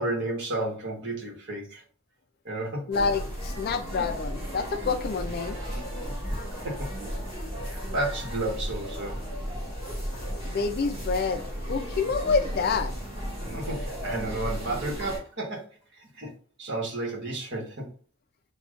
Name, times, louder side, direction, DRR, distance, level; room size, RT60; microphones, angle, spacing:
voice 1, 0.0-1.8 2.4-2.9 6.6-6.9 7.6-9.2 13.5-16.3 16.6-17.9, right 2 dB, 55° right, 1.3 m, -32 dB
voice 2, 2.9-5.6 10.4-13.0, left 5 dB, 45° left, 0.4 m, -28 dB
sound 1, 2.9-15.2, equal, 25° right, 1.7 m, -34 dB
6.9 x 2.3 x 2.4 m
head